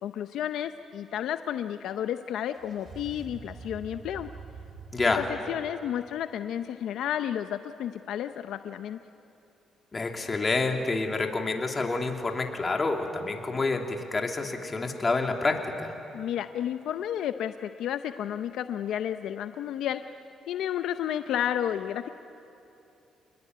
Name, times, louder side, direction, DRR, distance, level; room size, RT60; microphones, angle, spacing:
voice 1, 0.0-4.3 5.2-9.0 16.1-20.0 20.5-22.1, left 10 dB, 80° left, 9 dB, 0.7 m, -32 dB
sound 1, 2.5-5.3, right 5 dB, 45° right, 2.9 m, -45 dB
voice 2, 4.9-5.2 9.9-15.9, left 3 dB, 30° left, 3 dB, 2.8 m, -28 dB
27.5 x 21.0 x 9.4 m, 2.7 s
cardioid pair, 90°, 0 cm